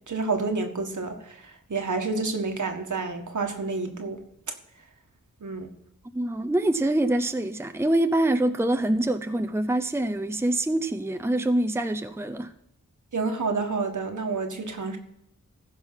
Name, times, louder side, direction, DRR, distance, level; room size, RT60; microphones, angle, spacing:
voice 1, 0.0-4.2 5.4-5.7 13.1-15.0, right 4 dB, 70° right, 4 dB, 1.7 m, -29 dB
voice 2, 6.1-12.5, right 1 dB, 10° right, 9 dB, 0.7 m, -25 dB
15.5 x 5.5 x 5.7 m, 0.78 s
wide cardioid pair, 60°, 31 cm